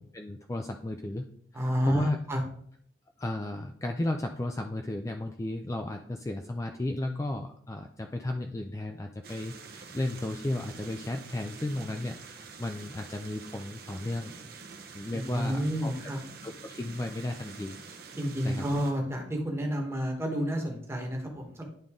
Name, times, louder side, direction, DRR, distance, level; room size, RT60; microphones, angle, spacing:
voice 1, 0.1-1.3 1.5-2.2 3.2-14.3 14.9-15.9 16.4-17.8 18.4-18.7, left 1 dB, 15° left, 4 dB, 0.3 m, -34 dB
voice 2, 1.5-2.4 15.1-16.2 18.2-21.6, equal, 15° right, 1 dB, 1.2 m, -30 dB
sound 1, 9.2-18.9, right 5 dB, 55° right, 0.8 m, -47 dB
10.5 x 3.8 x 3.6 m, 0.65 s
head